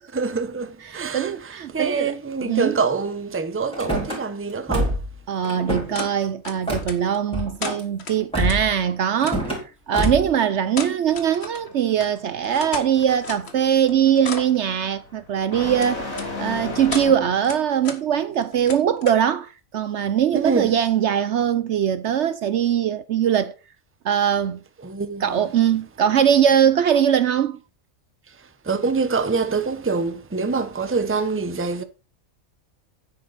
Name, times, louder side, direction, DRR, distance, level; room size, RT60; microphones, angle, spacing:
voice 1, 0.1-5.0 20.3-20.8 24.8-25.4 28.3-31.8, right 4 dB, 10° right, 0.7 m, -25 dB
voice 2, 0.9-2.1 2.4-2.8 5.3-9.5 9.9-23.5 24.0-24.6 25.2-27.6, right 9 dB, 65° right, 0.9 m, -21 dB
Car / Slam, 3.7-4.2 4.7-5.1 5.4-6.1 6.7-6.9 7.3-7.8 8.3-8.7 9.2-9.6 9.9-10.3, equal, 5° left, 4.2 m, -25 dB
sound 1, 5.9-6.1 6.4-7.2 7.6-8.6 9.2-9.4 10.0-10.1 10.7-11.7 12.0-12.1 12.4-13.6 13.9-14.6 15.8-16.3 16.7-17.1 17.4-18.0 18.3-19.2, left 4 dB, 50° left, 1.7 m, -34 dB
sound 2, 11.1-17.5, left 2 dB, 75° left, 3.5 m, -36 dB
9.9 x 8.6 x 4.1 m
omnidirectional pair, 1.4 m